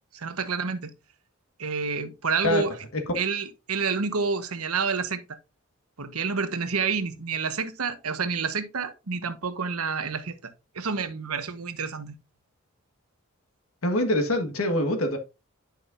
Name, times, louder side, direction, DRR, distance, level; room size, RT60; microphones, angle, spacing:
voice 1, 0.1-0.9 1.6-2.7 3.1-5.2 6.0-10.3 10.7-12.1, right 5 dB, 90° right, 1.1 m, -28 dB
voice 2, 13.8-15.2, left 1 dB, 75° left, 1.5 m, -24 dB
10.0 x 5.8 x 2.5 m
head